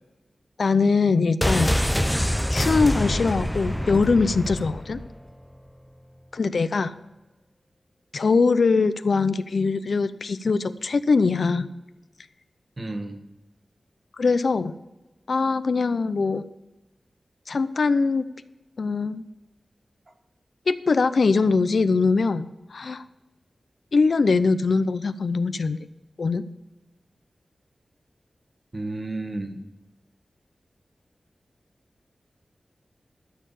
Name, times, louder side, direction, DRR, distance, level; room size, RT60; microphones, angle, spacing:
voice 1, 0.6-1.8 2.5-5.0 6.3-6.9 8.1-11.7 14.2-14.7 15.3-16.4 17.5-18.2 18.8-19.2 20.7-23.0 23.9-25.8 26.2-26.4, left 4 dB, 70° left, 12 dB, 0.6 m, -22 dB
sound 1, 1.4-5.2 5.4-5.5, equal, 5° left, 0.6 m, -25 dB
voice 2, 12.8-13.2 28.7-29.6, right 2 dB, 35° right, 5 dB, 1.5 m, -32 dB
13.5 x 6.6 x 7.1 m, 1.1 s
wide cardioid pair, 95°, 0 cm